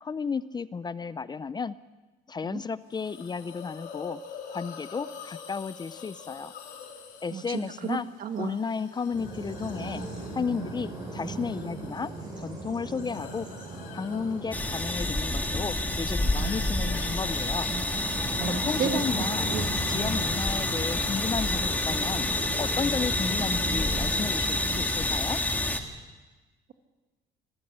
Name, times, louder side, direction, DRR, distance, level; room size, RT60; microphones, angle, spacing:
voice 1, 0.0-1.7 2.3-4.2 4.5-6.5 7.2-8.1 8.4-10.0 10.3-12.1 12.4-13.5 13.9-17.7 18.4-19.5 19.9-22.3 22.6-25.4, left 5 dB, 25° left, 15 dB, 0.6 m, -33 dB
Hiss, 2.9-18.3, left 7 dB, 75° left, 3.8 m, -47 dB
voice 2, 7.3-8.6 18.4-19.0 19.5-19.7, right 7 dB, 55° right, 7 dB, 1.8 m, -33 dB
Bird vocalization bird call bird song, 9.1-24.9, right 3 dB, 25° right, 7.0 m, -38 dB
sound 1, 14.5-25.8, left 2 dB, 10° left, 2.0 m, -28 dB
26.0 x 14.5 x 8.1 m, 1.2 s
cardioid pair, 110°, 17 cm